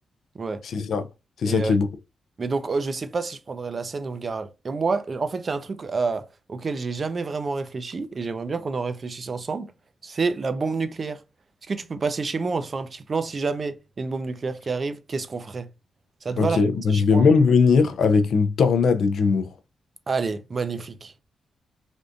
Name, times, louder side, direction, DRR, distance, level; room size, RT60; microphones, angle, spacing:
voice 1, 0.6-1.0 1.4-1.9 16.4-19.5, left 5 dB, 75° left, 0.4 m, -19 dB
voice 2, 2.4-9.7 10.0-11.2 11.7-15.7 16.2-16.6 16.9-17.3 20.1-21.1, right 4 dB, 40° right, 0.5 m, -28 dB
3.4 x 2.6 x 2.5 m
cardioid pair, 85°, 0 cm